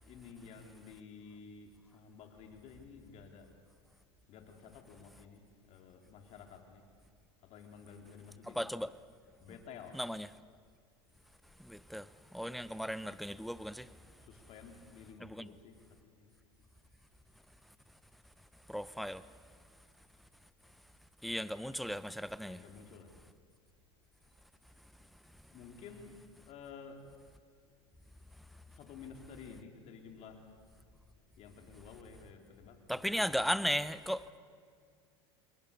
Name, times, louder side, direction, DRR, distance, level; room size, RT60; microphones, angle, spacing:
voice 1, 0.0-3.5 4.3-6.9 7.5-8.7 9.4-10.0 14.2-16.4 22.4-23.1 25.5-26.2 26.5-27.1 28.7-30.5 31.3-33.4, left 6 dB, 50° left, 4.1 m, -52 dB
voice 2, 8.4-8.9 9.9-10.3 11.6-13.9 15.2-15.5 18.7-19.2 21.2-22.6 32.9-34.2, equal, ahead, 0.8 m, -36 dB
28.0 x 22.0 x 7.0 m
hypercardioid pair, 95°, 14 cm